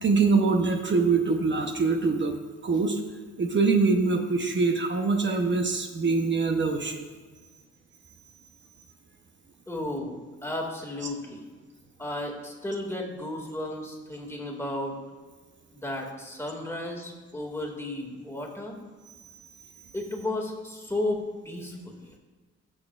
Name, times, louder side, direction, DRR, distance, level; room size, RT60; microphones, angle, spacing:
voice 1, 0.0-2.3 2.6-2.9 3.4-7.0, right 4 dB, 40° right, 3 dB, 1.0 m, -24 dB
voice 2, 9.7-11.4 12.0-15.0 15.7-18.8 19.9-22.0, left 1 dB, 10° left, -1 dB, 2.2 m, -33 dB
18.0 x 6.3 x 2.5 m, 1.4 s
cardioid pair, 90°, 30 cm